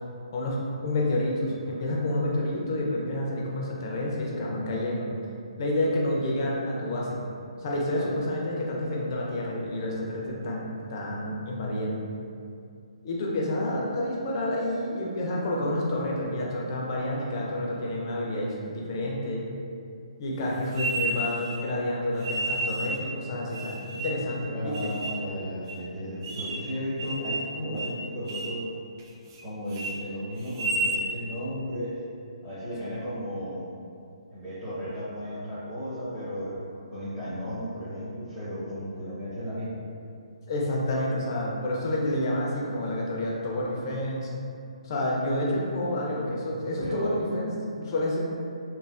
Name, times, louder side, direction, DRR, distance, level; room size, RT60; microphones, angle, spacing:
voice 1, 0.3-5.1 5.6-7.2 7.6-12.0 13.0-19.4 20.2-24.9 40.5-44.3 44.8-48.2, left 1 dB, 40° left, -3 dB, 0.6 m, -29 dB
sound 1, 20.7-21.6 22.2-23.0 23.5-24.3 24.7-25.2 25.7-25.8 26.2-26.7 27.0-27.5 27.8-28.0 28.3-28.6 29.0-29.4 29.7-29.9 30.4-31.0, right 2 dB, 35° right, 0.3 m, -31 dB
voice 2, 24.5-28.6 29.4-32.0 32.4-33.7 34.3-36.6 36.9-39.8 46.8-47.3, equal, 15° right, -17 dB, 0.9 m, -34 dB
3.2 x 2.2 x 2.4 m, 2.4 s
hypercardioid pair, 150°, 3 cm